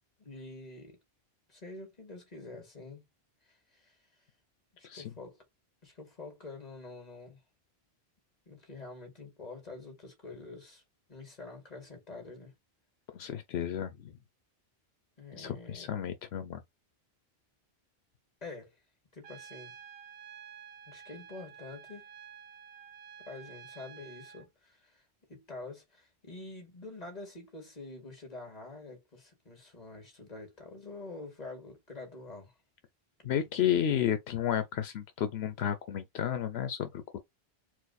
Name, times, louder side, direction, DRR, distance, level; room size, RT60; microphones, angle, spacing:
voice 1, 0.2-1.0 1.5-3.1 3.4-4.0 4.8-5.4 5.8-7.4 8.5-10.8 11.1-12.5 15.2-15.9 18.4-18.8 19.1-19.7 20.9-22.1 23.2-25.0 25.3-32.5 33.2-33.3, left 3 dB, 40° left, 2.0 m, -47 dB
voice 2, 13.1-14.2 15.4-16.6 33.2-37.2, left 10 dB, 85° left, 0.9 m, -32 dB
Trumpet, 19.2-24.5, right 8 dB, 75° right, 0.9 m, -50 dB
4.6 x 2.1 x 4.0 m
omnidirectional pair, 1.0 m